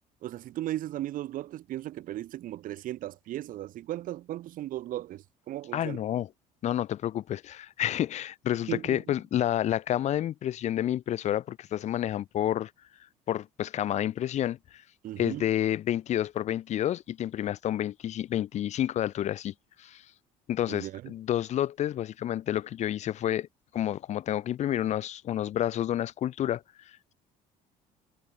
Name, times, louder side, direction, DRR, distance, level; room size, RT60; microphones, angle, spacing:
voice 1, 0.2-6.0 8.7-9.2 15.0-15.5 20.7-21.1, right 14 dB, 60° right, 2.4 m, -36 dB
voice 2, 5.7-6.3 6.6-12.7 13.3-14.6 15.2-20.0 20.5-23.5 23.7-26.6, left 11 dB, 45° left, 0.8 m, -29 dB
cardioid pair, 125°, 16 cm